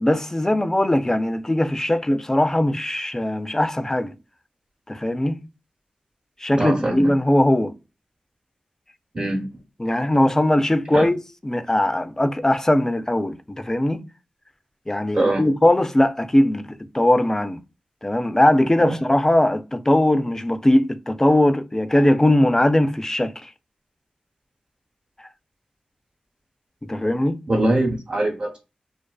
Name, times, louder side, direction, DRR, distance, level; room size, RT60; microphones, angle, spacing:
voice 1, 0.0-4.1 4.9-5.5 6.4-7.7 9.8-14.0 14.9-17.6 18.0-23.5 26.8-27.4, left 1 dB, 20° left, 0.3 m, -20 dB
voice 2, 6.6-7.1 9.1-9.5 10.9-11.1 15.1-15.5 18.8-19.0 27.5-28.6, right 1 dB, 50° right, 0.9 m, -22 dB
2.4 x 2.3 x 2.2 m
cardioid pair, 60°, 3 cm